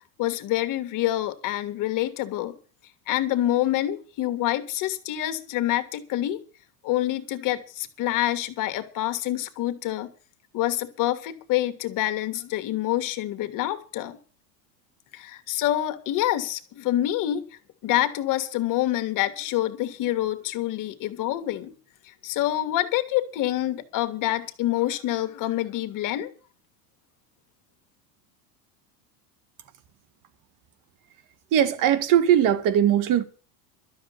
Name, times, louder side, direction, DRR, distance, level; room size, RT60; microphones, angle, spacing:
voice 1, 0.2-2.6 3.1-6.4 6.8-10.1 10.5-14.2 15.1-17.4 17.8-21.7 22.0-26.3, left 14 dB, 45° left, 1.8 m, -27 dB
voice 2, 31.5-33.2, right 10 dB, 45° right, 1.8 m, -20 dB
12.5 x 6.8 x 9.5 m
supercardioid pair, 135°, 44 cm